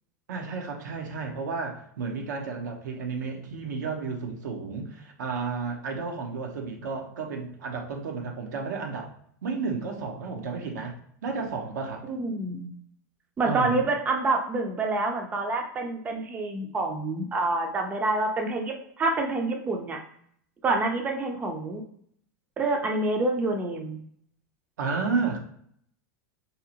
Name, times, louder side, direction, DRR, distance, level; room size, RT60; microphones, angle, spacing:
voice 1, 0.3-9.1 9.4-10.9 11.2-12.1 13.4-13.8 24.8-25.4, right 4 dB, 80° right, 2 dB, 0.6 m, -32 dB
voice 2, 12.1-12.7 13.4-20.0 20.6-21.8 22.6-24.0, right 2 dB, 15° right, 3 dB, 0.4 m, -27 dB
2.7 x 2.0 x 2.7 m, 0.66 s
hypercardioid pair, 115°, 9 cm